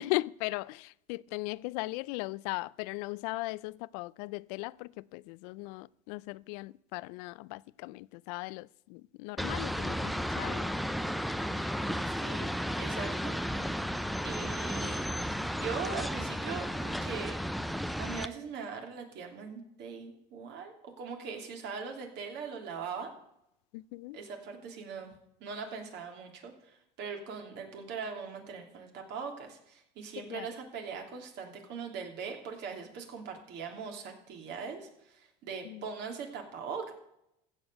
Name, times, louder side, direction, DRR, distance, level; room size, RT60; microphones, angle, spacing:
voice 1, 0.0-10.7 23.7-24.2 30.2-30.5 35.6-35.9, left 22 dB, 75° left, 0.4 m, -38 dB
sound 1, 9.4-18.3, equal, ahead, 0.5 m, -33 dB
voice 2, 12.0-12.5 12.8-13.4 14.2-15.0 15.5-17.4 18.0-23.1 24.1-25.1 25.4-36.9, right 5 dB, 55° right, 2.9 m, -41 dB
15.0 x 5.4 x 7.9 m
supercardioid pair, 105°, 20 cm